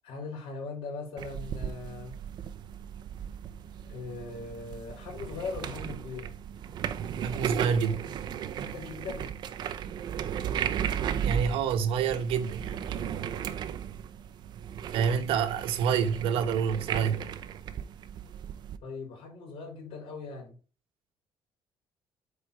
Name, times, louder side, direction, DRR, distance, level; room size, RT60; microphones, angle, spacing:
voice 1, 0.0-2.1 3.9-6.3 8.6-9.3 18.8-20.6, left 4 dB, 85° left, 4.0 m, -39 dB
sound 1, 1.2-18.8, right 9 dB, 55° right, 0.6 m, -36 dB
voice 2, 7.2-8.0 11.0-13.1 14.9-17.3, right 7 dB, 90° right, 1.1 m, -28 dB
8.5 x 4.1 x 4.7 m
cardioid pair, 145°, 9 cm